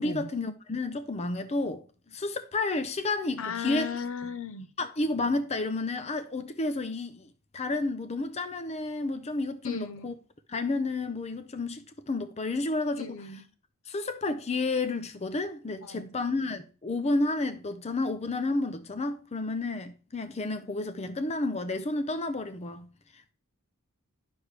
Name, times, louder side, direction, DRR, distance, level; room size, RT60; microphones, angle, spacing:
voice 1, 0.0-3.9 4.8-10.1 10.5-13.4 13.9-22.9 23.1-23.3, left 2 dB, 30° left, 0.6 m, -31 dB
voice 2, 3.4-4.7 9.6-10.1 13.0-13.4 15.8-16.2, left 6 dB, 60° left, 0.8 m, -36 dB
11.0 x 6.4 x 3.3 m
head